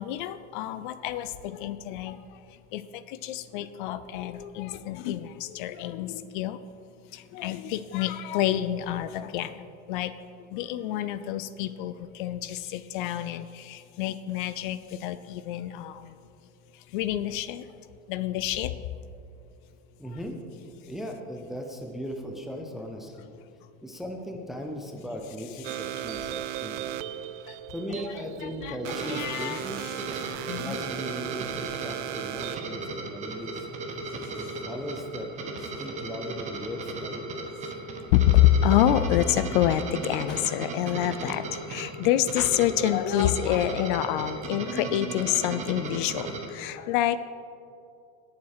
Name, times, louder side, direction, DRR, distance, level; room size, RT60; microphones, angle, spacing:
voice 1, 0.0-2.2 2.7-6.6 7.1-10.1 10.5-16.1 16.9-17.6 18.1-18.7 27.5-27.6 28.4-28.8 29.1-29.6 30.5-30.8 38.1-47.2, left 12 dB, 50° left, 14 dB, 0.5 m, -27 dB
voice 2, 20.0-20.4 20.8-23.3 23.8-26.9 27.7-29.9 30.6-33.7 34.2-35.3 35.6-37.5, equal, ahead, 2 dB, 0.4 m, -38 dB
sound 1, 25.6-32.8, right 12 dB, 50° right, 0.5 m, -36 dB
sound 2, 28.8-46.5, right 3 dB, 20° right, 1.0 m, -36 dB
18.0 x 7.3 x 4.8 m, 2.5 s
supercardioid pair, 175°, 32 cm